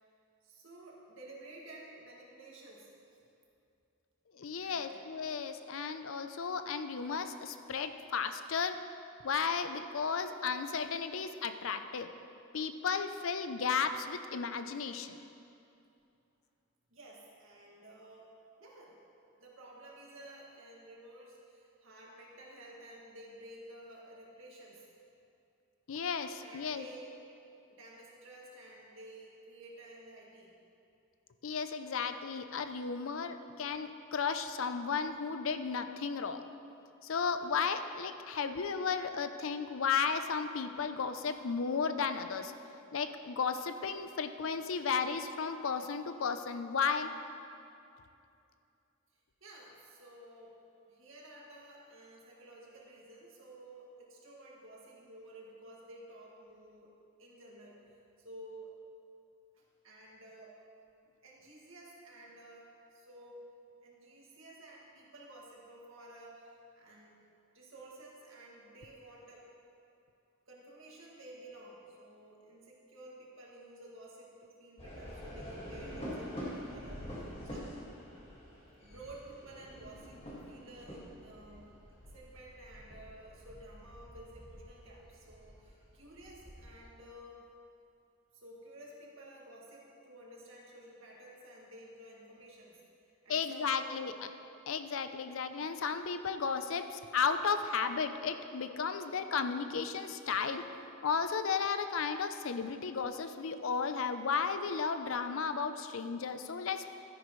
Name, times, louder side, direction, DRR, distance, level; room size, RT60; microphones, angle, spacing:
voice 1, 0.4-3.2 4.6-5.0 16.9-18.3 18.6-19.0 19.4-24.9 26.4-27.2 27.7-30.5 49.4-50.6 50.9-57.8 58.2-58.7 59.5-60.6 61.2-63.5 63.8-67.2 67.5-69.4 70.5-77.8 78.7-81.8 82.1-87.5 88.3-92.8 93.1-94.2, right 1 dB, 65° right, -4 dB, 2.0 m, -53 dB
voice 2, 4.3-8.8 9.2-12.1 12.5-15.2 25.9-26.8 31.4-36.4 37.0-42.5 42.9-47.1 93.3-94.1 94.7-100.7 101.0-106.9, left 5 dB, 70° left, 9 dB, 0.5 m, -34 dB
sound 1, 74.8-86.9, equal, 25° left, 1.8 m, -46 dB
13.0 x 10.0 x 3.1 m, 2.6 s
head